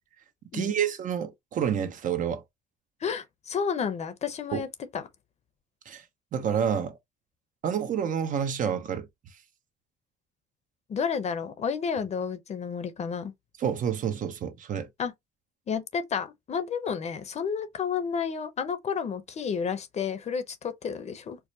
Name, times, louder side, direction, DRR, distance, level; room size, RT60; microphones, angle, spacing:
voice 1, 0.5-2.4 4.5-4.6 5.9-6.0 6.3-7.0 7.6-9.4 13.6-14.9, right 8 dB, 50° right, 0.7 m, -29 dB
voice 2, 3.0-4.7 4.9-5.0 10.9-13.3 15.0-15.1 15.7-21.4, left 6 dB, 40° left, 0.7 m, -31 dB
4.7 x 2.1 x 2.8 m
cardioid pair, 110°, 17 cm